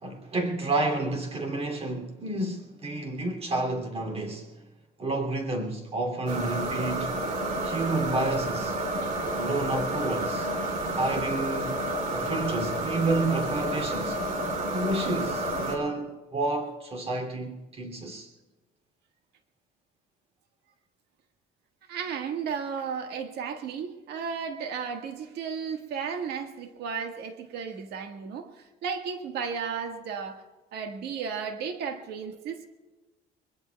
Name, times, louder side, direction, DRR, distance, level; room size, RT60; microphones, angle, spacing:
voice 1, 0.0-4.5 5.0-7.2 7.6-8.8 9.3-10.5 10.9-11.8 12.1-14.2 14.7-18.3, right 2 dB, 35° right, 2.8 m, -30 dB
sound 1, 6.3-15.8, right 1 dB, 55° right, 2.9 m, -30 dB
voice 2, 21.9-28.5 28.8-30.4 30.7-32.7, right 6 dB, 75° right, 1.7 m, -34 dB
25.5 x 21.0 x 2.3 m
cardioid pair, 110°, 17 cm